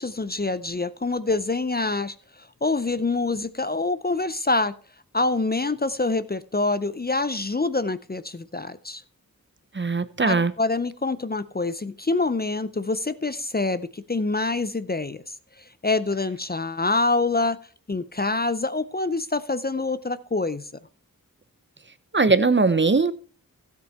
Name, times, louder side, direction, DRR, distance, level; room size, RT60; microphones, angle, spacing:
voice 1, 0.0-4.7 5.1-9.0 10.3-17.6 17.9-20.7, left 3 dB, 30° left, 0.6 m, -26 dB
voice 2, 9.7-10.5 22.1-23.1, right 4 dB, 35° right, 0.7 m, -20 dB
13.0 x 8.3 x 4.2 m
wide cardioid pair, 40°, 34 cm